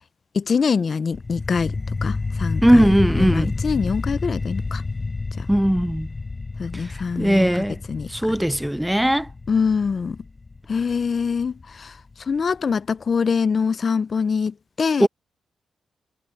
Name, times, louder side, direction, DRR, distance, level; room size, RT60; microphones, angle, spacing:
voice 1, 0.3-1.7 2.0-2.8 3.2-4.8 6.6-8.1 9.5-10.2 10.7-11.9 12.3-15.1, left 5 dB, 50° left, 0.5 m, -24 dB
sound 1, 1.1-12.1, left 3 dB, 30° left, 3.8 m, -29 dB
voice 2, 2.6-3.5 5.5-6.1 7.2-7.8 8.1-9.3 15.0-15.1, equal, 5° right, 0.5 m, -18 dB
cardioid pair, 85°, 0 cm